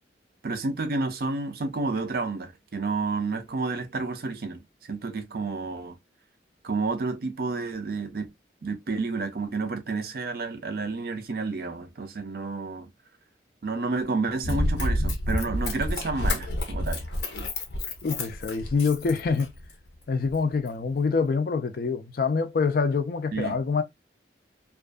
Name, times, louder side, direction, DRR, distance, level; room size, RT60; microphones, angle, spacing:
voice 1, 0.4-4.6 4.9-6.0 6.6-8.3 8.6-12.9 13.6-17.0 23.3-23.6, right 3 dB, 55° right, 0.5 m, -30 dB
Run, 14.4-19.7 20.3-20.4, left 1 dB, 85° left, 0.7 m, -29 dB
voice 2, 18.0-19.5 20.1-23.8, left 4 dB, 55° left, 0.4 m, -25 dB
2.5 x 2.4 x 2.2 m
head